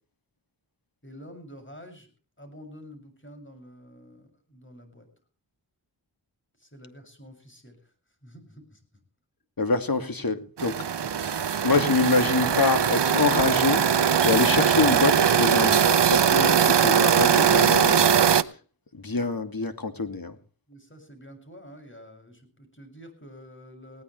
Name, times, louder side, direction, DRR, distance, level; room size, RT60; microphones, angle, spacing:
voice 1, 1.0-2.1 2.4-5.1 6.6-7.9 8.2-8.8 11.1-11.3 20.7-24.0, equal, 25° left, 6 dB, 7.0 m, -48 dB
voice 2, 9.6-11.1 11.6-18.6 18.9-20.4, left 3 dB, 55° left, 8 dB, 2.4 m, -26 dB
sound 1, 10.6-18.4, right 8 dB, 70° right, 0.9 m, -21 dB
20.0 x 17.5 x 3.3 m, 0.37 s
wide cardioid pair, 55°, 43 cm